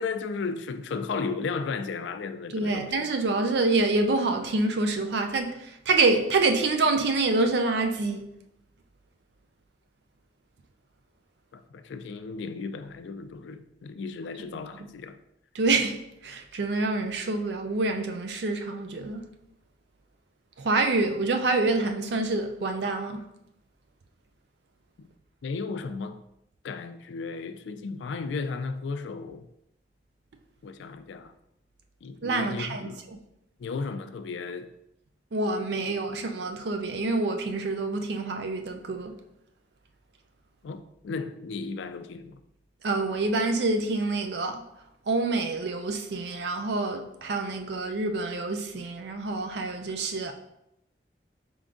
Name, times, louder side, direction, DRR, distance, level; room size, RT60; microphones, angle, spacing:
voice 1, 0.0-2.9 11.5-15.2 25.0-25.1 25.4-26.2 26.6-29.4 30.6-31.3 32.0-33.0 33.6-34.7 35.9-36.2 40.6-42.4, left 4 dB, 85° left, 0.3 m, -35 dB
voice 2, 2.5-8.2 15.5-19.3 20.6-23.3 32.2-33.2 35.3-39.2 42.8-44.6 45.1-50.3, right 3 dB, 70° right, 0.4 m, -27 dB
4.4 x 3.6 x 2.5 m
head